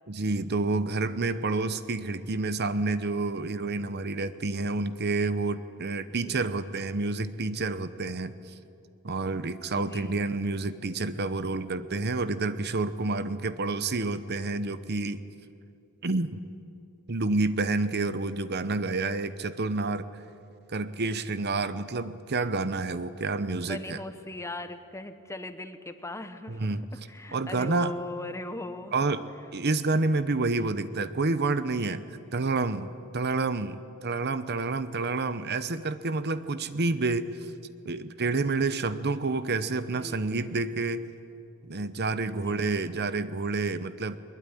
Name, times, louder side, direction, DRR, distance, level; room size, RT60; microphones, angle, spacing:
voice 1, 0.1-8.3 9.0-15.2 16.0-16.4 17.1-20.0 20.7-24.0 26.5-26.9 27.3-27.9 28.9-32.0 32.3-37.4 37.8-41.1 41.6-44.2, right 3 dB, 50° right, 13 dB, 0.9 m, -29 dB
voice 2, 9.8-10.2 23.6-26.6 26.9-29.2 39.9-40.2 42.2-42.9, left 2 dB, 15° left, 9 dB, 1.1 m, -39 dB
21.5 x 21.5 x 9.9 m, 2.6 s
head